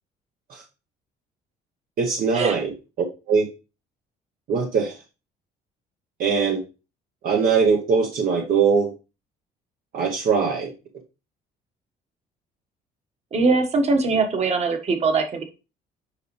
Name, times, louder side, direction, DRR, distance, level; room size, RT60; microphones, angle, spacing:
voice 1, 2.0-3.5 4.5-5.0 6.2-6.6 7.2-8.9 9.9-10.7, right 5 dB, 60° right, 2 dB, 1.2 m, -21 dB
voice 2, 13.3-15.4, right 3 dB, 40° right, 5 dB, 1.6 m, -21 dB
8.1 x 5.0 x 3.2 m, 0.31 s
cardioid pair, 110°, 17 cm